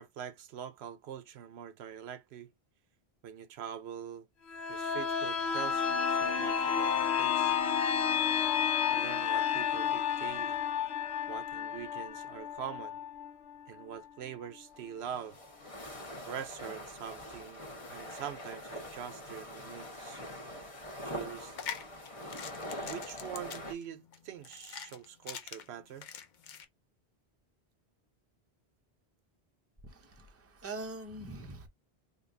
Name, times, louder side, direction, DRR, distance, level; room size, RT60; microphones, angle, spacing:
voice 1, 0.0-2.5 3.2-4.3 4.7-7.5 8.9-10.6 11.3-13.0 13.7-15.4 16.3-20.3 21.0-21.5 22.8-26.1, right 9 dB, 80° right, 0.9 m, -44 dB
sound 1, 4.5-14.1 14.4-14.5, left 7 dB, 85° left, 0.9 m, -31 dB
sound 2, 14.7-23.7, left 1 dB, 35° left, 1.0 m, -44 dB
sound 3, 21.4-26.6, left 8 dB, 55° left, 0.6 m, -44 dB
voice 2, 29.9-31.7, right 2 dB, 15° right, 0.6 m, -43 dB
5.2 x 2.3 x 2.6 m
omnidirectional pair, 1.1 m